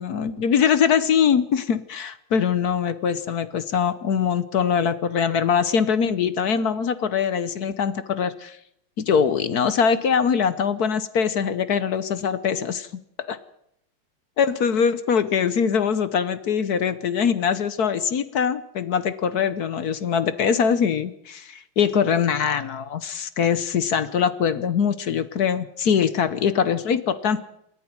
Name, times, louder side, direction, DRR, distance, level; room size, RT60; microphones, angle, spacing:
voice 1, 0.0-8.6 9.0-12.9 13.3-13.4 14.4-27.4, left 7 dB, 55° left, 14 dB, 1.2 m, -22 dB
27.5 x 10.5 x 9.6 m, 0.77 s
omnidirectional pair, 2.4 m